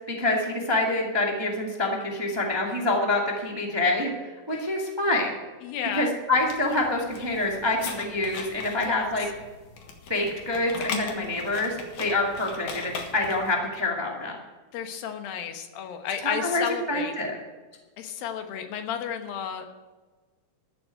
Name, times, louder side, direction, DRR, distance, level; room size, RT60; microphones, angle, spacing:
voice 1, 0.1-5.3 5.9-9.3 10.1-14.4 16.2-17.3, left 2 dB, 10° right, -1 dB, 1.1 m, -26 dB
voice 2, 5.6-6.1 8.8-9.1 14.7-17.1 18.0-19.7, left 8 dB, 90° left, 6 dB, 3.0 m, -32 dB
sound 1, 6.3-13.5, left 5 dB, 65° left, 2.8 m, -38 dB
13.5 x 7.5 x 9.2 m, 1.3 s
omnidirectional pair, 4.0 m